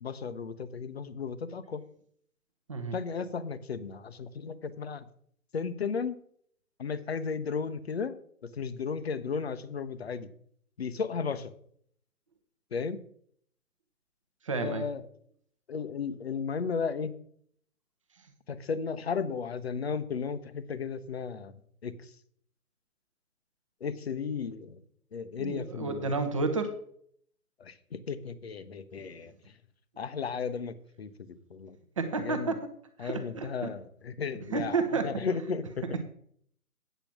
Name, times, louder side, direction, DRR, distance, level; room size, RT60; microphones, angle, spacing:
voice 1, 0.0-1.8 2.9-5.0 5.5-6.2 6.8-10.3 10.8-11.5 12.7-13.0 14.5-15.0 15.7-17.2 18.5-21.5 21.8-21.9 23.8-24.8 25.1-26.1 27.6-29.3 30.0-31.8 32.2-32.5 33.0-35.9, left 5 dB, 45° left, 13 dB, 0.8 m, -34 dB
voice 2, 14.4-14.9 25.3-26.7 29.0-29.1 32.0-32.7 33.0-33.7 34.5-35.1, right 4 dB, 20° right, 7 dB, 0.8 m, -31 dB
9.1 x 6.6 x 6.0 m, 0.64 s
figure-of-eight pair, 145°, 46 cm